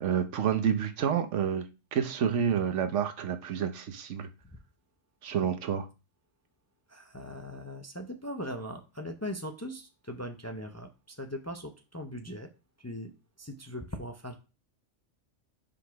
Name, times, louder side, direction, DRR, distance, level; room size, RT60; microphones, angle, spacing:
voice 1, 0.0-1.6 1.9-4.3 5.2-5.9, right 8 dB, 85° right, 9 dB, 1.1 m, -29 dB
voice 2, 6.9-12.5 12.8-13.1 13.4-14.4, equal, 20° left, 6 dB, 0.5 m, -40 dB
5.0 x 4.1 x 5.7 m, 0.30 s
omnidirectional pair, 1.2 m